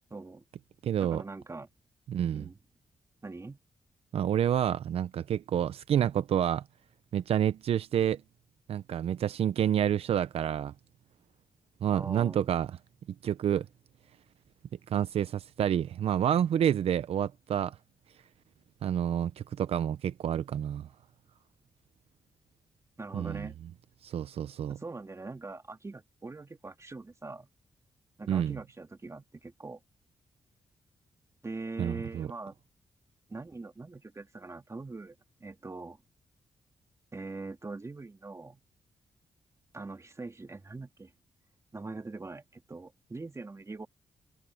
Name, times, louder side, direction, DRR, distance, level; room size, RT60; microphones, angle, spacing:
voice 1, 0.1-0.4 1.0-1.7 2.3-2.6 3.2-3.6 11.9-12.5 23.0-23.6 24.7-27.5 28.2-29.8 31.4-32.6 33.3-36.0 37.1-38.6 39.7-41.1 41.7-43.9, right 3 dB, 30° right, 2.3 m, -42 dB
voice 2, 0.8-1.2 2.1-2.5 4.1-6.6 7.1-8.2 8.7-10.7 11.8-12.7 13.2-13.7 14.9-17.8 18.8-20.9 23.1-23.5 24.0-24.8 28.3-28.6 31.8-32.3, right 10 dB, 75° right, 0.6 m, -28 dB
cardioid pair, 60°, 10 cm